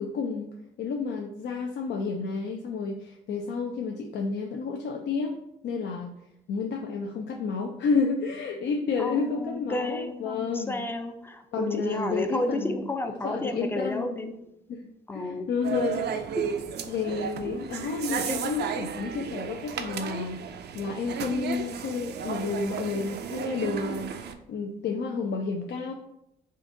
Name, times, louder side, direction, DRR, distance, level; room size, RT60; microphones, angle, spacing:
voice 1, 0.0-5.3 5.6-6.1 6.5-10.8 11.5-12.9 13.2-14.1 14.7-14.8 15.1-16.1 16.9-20.4 20.7-25.9, left 4 dB, 60° left, 1 dB, 0.5 m, -30 dB
voice 2, 9.0-14.3 15.1-15.5 16.4-16.5, left 1 dB, 10° left, 6 dB, 0.5 m, -31 dB
sound 1, 15.6-24.3, right 7 dB, 55° right, 0.4 m, -34 dB
3.8 x 2.5 x 3.8 m, 0.82 s
cardioid pair, 90°, 20 cm